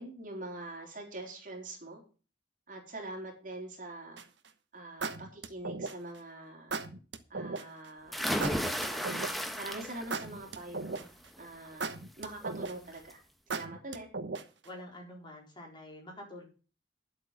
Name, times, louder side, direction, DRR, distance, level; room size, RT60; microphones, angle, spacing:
voice 1, 0.0-2.0 2.7-4.2 4.7-6.8 7.3-9.1 9.6-11.1 11.4-13.2 13.5-14.1, right 2 dB, 45° right, 1 dB, 4.0 m, -44 dB
sound 1, 4.2-4.5 5.0-6.2 6.7-7.6 8.4-9.6 10.1-11.3 11.8-13.0 13.5-14.7, right 4 dB, 75° right, 1.2 m, -37 dB
sound 2, 8.1-10.2 10.6-11.0 12.4-12.5 12.9-13.0, equal, ahead, 1.3 m, -33 dB
voice 2, 14.6-16.4, left 1 dB, 25° left, 0 dB, 4.3 m, -47 dB
11.0 x 8.0 x 5.7 m, 0.36 s
head